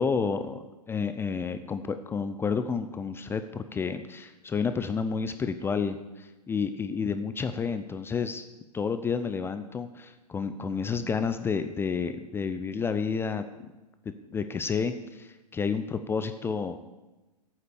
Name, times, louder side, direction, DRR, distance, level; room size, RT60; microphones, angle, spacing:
voice 1, 0.0-8.4 8.7-13.4 14.3-16.8, left 5 dB, 10° left, 10 dB, 0.5 m, -30 dB
13.0 x 8.7 x 7.1 m, 1.1 s
figure-of-eight pair, 110°, 21 cm